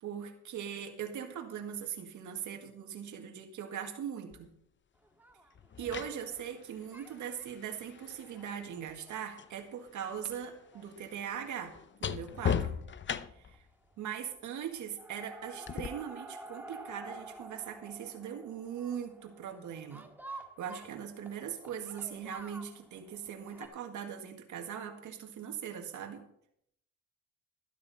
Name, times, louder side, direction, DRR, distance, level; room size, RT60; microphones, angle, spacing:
voice 1, 0.0-4.5 5.8-12.8 13.3-13.6 14.0-26.2, right 8 dB, 75° right, 3 dB, 2.0 m, -40 dB
sound 1, 4.3-4.5 5.6-9.6 9.9-13.6 15.7-15.9, left 7 dB, 40° left, 0.7 m, -38 dB
sound 2, 5.0-6.6 6.9-7.4 7.9-10.0 10.4-10.5 10.7-10.8 11.1-11.2 12.6-12.8 13.1-13.6 13.8-14.4 14.7-23.7, right 2 dB, 5° right, 1.7 m, -50 dB
13.0 x 12.5 x 4.2 m, 0.72 s
cardioid pair, 90°, 30 cm